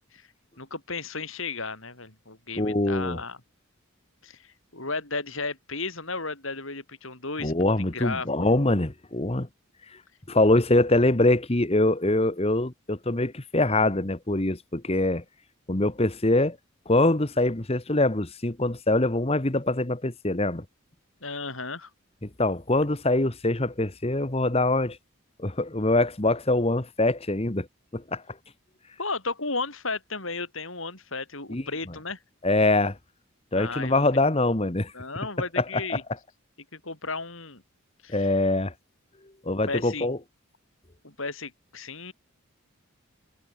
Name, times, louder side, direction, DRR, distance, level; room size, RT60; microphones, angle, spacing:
voice 1, 0.6-3.4 4.2-8.3 8.7-8.8 21.2-21.9 29.0-32.2 33.6-34.0 34.9-36.0 36.7-37.6 38.0-38.3 39.5-40.1 41.0-42.1, left 3 dB, 65° left, 6.3 m, -34 dB
voice 2, 2.6-3.2 7.4-9.5 10.3-15.2 15.7-16.6 16.9-20.6 22.2-25.0 25.4-27.7 27.9-28.2 31.5-31.6 32.4-33.0 33.5-34.9 35.6-36.0 38.1-38.7 39.4-40.2, left 2 dB, 30° left, 1.3 m, -24 dB
head